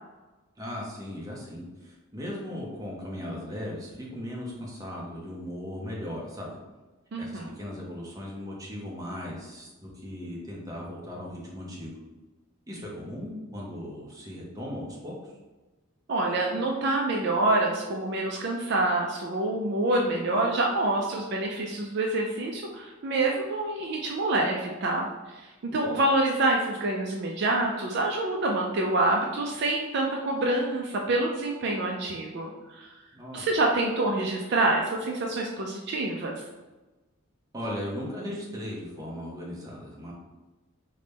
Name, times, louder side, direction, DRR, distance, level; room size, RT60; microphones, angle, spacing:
voice 1, 0.6-6.6 7.2-12.0 12.7-15.3 25.7-26.0 33.1-33.5 37.5-40.1, left 1 dB, 15° right, -4 dB, 0.7 m, -37 dB
voice 2, 7.1-7.5 16.1-25.1 25.3-32.9 33.3-36.4, right 2 dB, 55° right, 0 dB, 0.4 m, -27 dB
3.9 x 2.1 x 3.3 m, 1.2 s
head